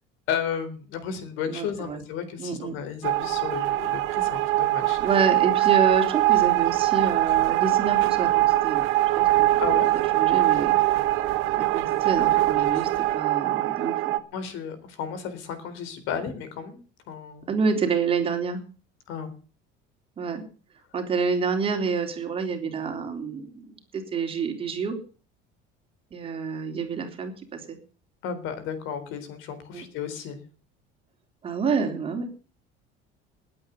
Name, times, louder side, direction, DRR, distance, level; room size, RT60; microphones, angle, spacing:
voice 1, 0.3-5.0 9.6-9.9 14.3-16.8 17.1-17.5 19.1-19.3 28.2-30.4, left 7 dB, 70° left, 11 dB, 3.9 m, -33 dB
voice 2, 1.5-2.0 2.4-2.8 5.0-8.9 9.2-9.6 9.9-10.7 11.5-14.2 17.5-18.6 20.2-20.4 20.9-24.9 26.1-27.8 29.7-29.8 31.4-32.3, right 5 dB, 25° right, 5 dB, 3.4 m, -28 dB
sound 1, 3.0-14.2, right 16 dB, 70° right, 1.6 m, -22 dB
19.5 x 8.8 x 7.0 m, 0.39 s
cardioid pair, 155°, 21 cm